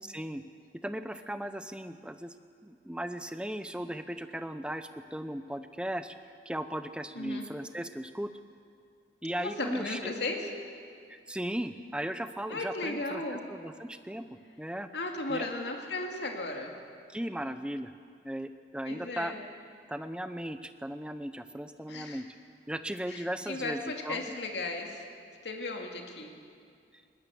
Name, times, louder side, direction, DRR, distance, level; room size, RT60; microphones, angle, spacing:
voice 1, 0.0-0.4 0.8-2.3 2.6-6.1 6.5-8.3 9.2-10.1 11.1-13.2 13.5-14.3 14.6-14.9 15.3-15.5 17.1-17.9 18.2-19.3 19.9-22.2 22.7-23.8 24.0-24.2, right 1 dB, 5° right, 10 dB, 0.7 m, -37 dB
voice 2, 7.1-7.5 9.4-10.5 12.5-13.4 14.9-16.7 18.8-19.4 21.9-22.2 23.1-25.0 25.4-26.3, left 2 dB, 80° left, 2 dB, 2.3 m, -36 dB
21.0 x 18.5 x 7.0 m, 2.2 s
head